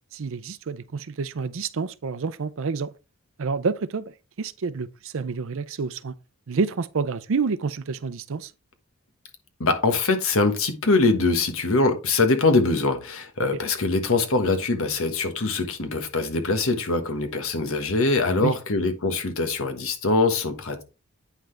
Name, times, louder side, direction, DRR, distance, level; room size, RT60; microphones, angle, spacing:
voice 1, 0.1-2.9 3.4-4.1 4.4-6.2 6.5-8.5 18.4-18.5, right 4 dB, 65° right, 0.6 m, -28 dB
voice 2, 9.6-20.8, left 3 dB, 70° left, 1.4 m, -23 dB
8.9 x 5.8 x 3.3 m
head